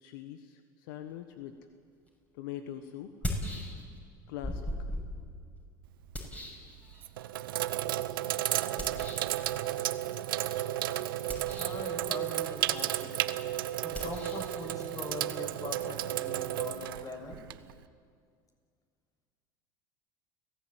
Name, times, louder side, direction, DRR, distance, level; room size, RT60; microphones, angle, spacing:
voice 1, 0.0-1.5 2.3-3.1 4.3-4.9, left 11 dB, 75° left, 8 dB, 1.3 m, -43 dB
sound 1, 2.1-2.2 3.0-4.1 4.4-7.3 8.8-9.4 11.2-11.9 13.9-16.5, left 1 dB, 10° left, 6.5 m, -40 dB
Sink (filling or washing), 5.9-6.3 6.9-17.8, right 13 dB, 85° right, 0.9 m, -33 dB
voice 2, 11.0-13.1 13.4-17.4, left 2 dB, 30° left, 3 dB, 6.9 m, -42 dB
30.0 x 17.0 x 9.0 m, 2.1 s
hypercardioid pair, 85°, 11 cm